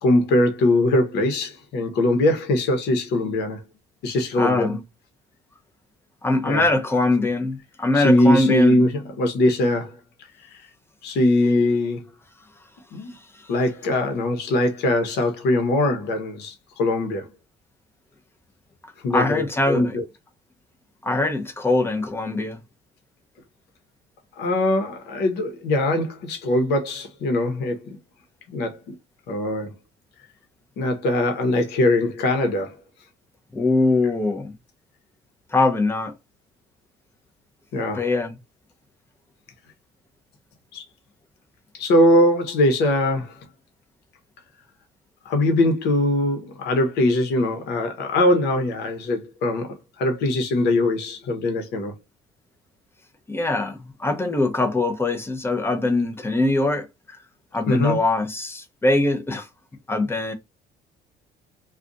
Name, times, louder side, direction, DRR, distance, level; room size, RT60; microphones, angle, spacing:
voice 1, 0.0-3.6 4.0-4.8 6.4-6.6 8.0-8.9 9.2-10.0 11.0-12.1 12.9-13.1 13.5-17.3 19.0-20.0 24.4-28.0 28.5-28.9 29.3-29.7 30.8-32.8 37.7-38.0 40.7-40.8 41.8-43.5 45.2-51.9 57.7-58.0, left 1 dB, 75° left, 0.9 m, -21 dB
voice 2, 4.4-4.8 6.2-8.8 13.4-13.5 19.1-20.0 21.0-22.6 33.5-34.5 35.5-36.1 37.9-38.3 53.3-57.2 57.5-59.5 59.9-60.3, left 2 dB, 15° left, 0.6 m, -22 dB
2.5 x 2.3 x 3.8 m
cardioid pair, 110°, 17 cm